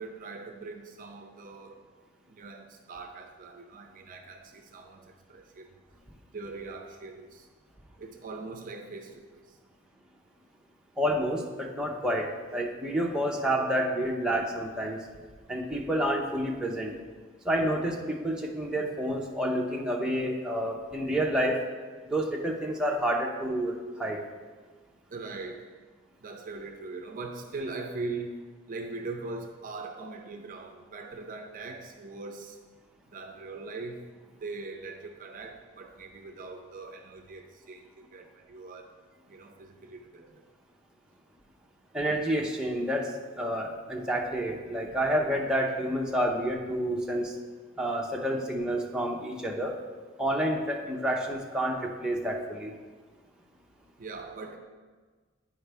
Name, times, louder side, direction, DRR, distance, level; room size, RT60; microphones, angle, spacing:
voice 1, 0.0-1.7 2.3-5.7 6.3-7.5 8.0-9.4 25.1-25.7 26.2-28.4 28.7-32.6 33.1-34.0 34.4-38.9 39.3-40.4 54.0-54.6, right 3 dB, 45° right, 4 dB, 0.5 m, -41 dB
voice 2, 11.0-15.0 15.5-16.9 17.4-21.6 22.1-24.2 41.9-47.4 47.8-49.8 50.2-52.7, right 1 dB, 5° right, -1 dB, 0.6 m, -29 dB
9.1 x 4.9 x 3.4 m, 1.4 s
head